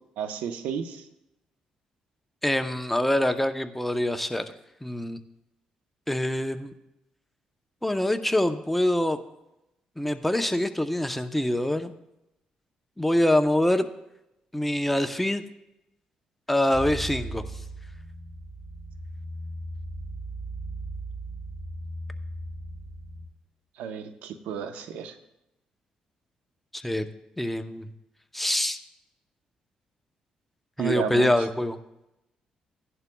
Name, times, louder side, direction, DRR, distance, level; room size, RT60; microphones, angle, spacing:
voice 1, 0.2-1.1 23.8-25.2 30.8-31.5, right 7 dB, 85° right, 8 dB, 0.9 m, -32 dB
voice 2, 2.4-4.4 4.8-5.2 6.1-6.7 7.8-9.2 10.0-11.9 13.0-13.9 14.5-15.4 16.5-17.4 26.7-27.1 27.4-27.9 28.3-28.8 30.8-31.8, left 1 dB, 5° left, 8 dB, 0.7 m, -25 dB
sound 1, 16.7-23.3, right 1 dB, 30° right, 2.6 m, -37 dB
15.5 x 11.0 x 2.3 m, 0.90 s
cardioid pair, 80°, 2 cm